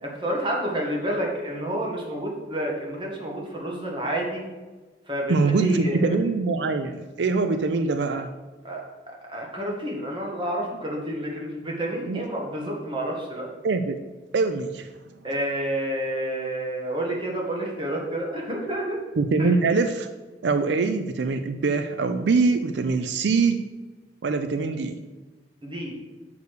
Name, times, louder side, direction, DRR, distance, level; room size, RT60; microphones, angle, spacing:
voice 1, 0.0-4.4 5.1-6.1 8.6-8.8 9.3-13.5 15.2-19.0 19.4-19.5 25.6-25.9, right 1 dB, 30° right, -1 dB, 1.6 m, -29 dB
voice 2, 5.3-8.3 12.0-12.2 13.6-14.0 14.3-14.9 19.2-20.1 20.4-23.6 24.2-25.0, right 4 dB, 80° right, 9 dB, 0.4 m, -23 dB
6.7 x 4.8 x 6.6 m, 1.3 s
head